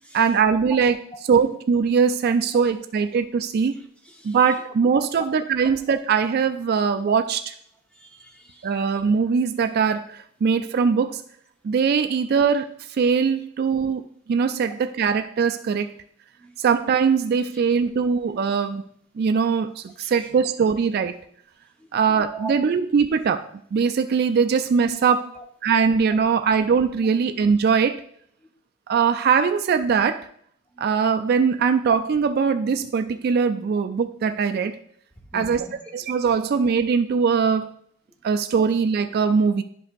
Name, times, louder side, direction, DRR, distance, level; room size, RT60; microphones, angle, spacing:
voice 1, 0.1-0.9 1.3-3.7 4.2-7.4 8.6-11.2 11.6-14.0 14.3-15.9 16.6-18.8 19.2-21.2 21.9-25.3 25.6-28.0 28.9-30.3 30.8-34.8 35.3-35.7 35.9-37.7 38.2-39.6, right 6 dB, 50° right, 9 dB, 0.3 m, -21 dB
voice 2, 3.7-4.6 5.2-5.3 7.9-9.0 10.4-10.7 16.4-16.5 17.5-17.6 20.0-20.3 21.8-22.0 22.3-22.5 25.3-25.4 28.4-28.5 30.7-30.9 35.2-35.7, right 3 dB, 5° left, 0 dB, 1.1 m, -41 dB
11.5 x 5.4 x 2.5 m, 0.65 s
head